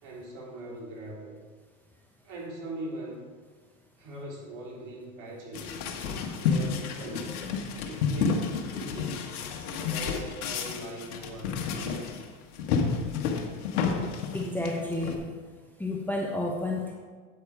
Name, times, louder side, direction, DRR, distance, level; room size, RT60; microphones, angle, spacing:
voice 1, 0.0-1.4 2.2-3.3 4.0-5.8 6.4-7.4 7.9-9.3 9.8-12.1, right 1 dB, 45° right, -3 dB, 3.4 m, -41 dB
sound 1, 5.5-12.3 12.5-15.2, left 5 dB, 70° left, 1.5 m, -30 dB
voice 2, 14.3-15.2 15.8-16.9, left 2 dB, 5° left, -1 dB, 0.9 m, -30 dB
8.7 x 8.1 x 4.8 m, 1.5 s
hypercardioid pair, 105°, 45 cm